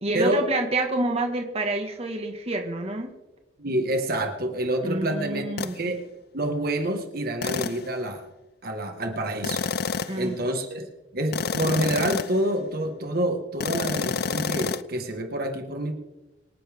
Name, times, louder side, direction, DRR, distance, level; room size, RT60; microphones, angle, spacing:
voice 1, 0.0-3.1 4.8-5.8 10.1-10.4, right 2 dB, 35° right, 3 dB, 1.7 m, -28 dB
voice 2, 3.6-6.0 6.3-8.2 8.6-9.6 10.1-10.9 11.1-15.9, right 1 dB, 55° right, 5 dB, 1.6 m, -27 dB
sound 1, 5.6-5.8 7.4-7.9 9.4-10.3 11.3-12.5 13.6-14.8, left 5 dB, 55° left, 0.5 m, -28 dB
26.0 x 10.0 x 3.6 m, 1.1 s
head